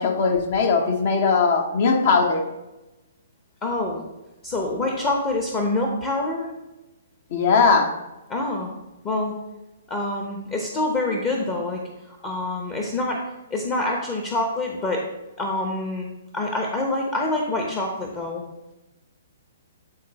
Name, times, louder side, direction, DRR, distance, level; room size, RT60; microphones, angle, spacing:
voice 1, 0.0-2.5 7.3-7.9, left 4 dB, 50° left, 4 dB, 1.1 m, -19 dB
voice 2, 3.6-4.0 4.4-6.5 8.3-8.7 9.0-9.3 9.9-11.8 12.1-13.2 13.5-15.0 15.4-16.1 16.3-18.4, left 2 dB, 25° left, 0 dB, 1.0 m, -26 dB
9.2 x 3.9 x 4.2 m, 1.0 s
figure-of-eight pair, 125°, 0 cm